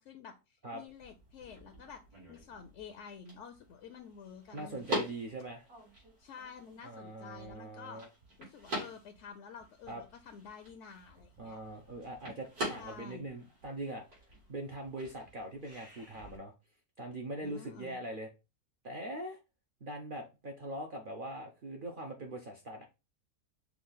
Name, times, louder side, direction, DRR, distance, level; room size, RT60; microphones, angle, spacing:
voice 1, 0.0-2.0 2.3-5.0 6.2-8.0 8.4-11.6 12.8-13.3 17.4-18.0, left 6 dB, 65° left, 0.8 m, -50 dB
sound 1, 0.9-16.4, equal, 80° right, 3.0 m, -45 dB
voice 2, 4.5-5.7 6.8-8.1 9.9-10.0 11.4-14.1 14.5-16.5 17.0-18.3 18.8-19.4 19.8-22.8, right 1 dB, 55° right, 0.6 m, -42 dB
5.8 x 2.4 x 3.8 m
omnidirectional pair, 1.6 m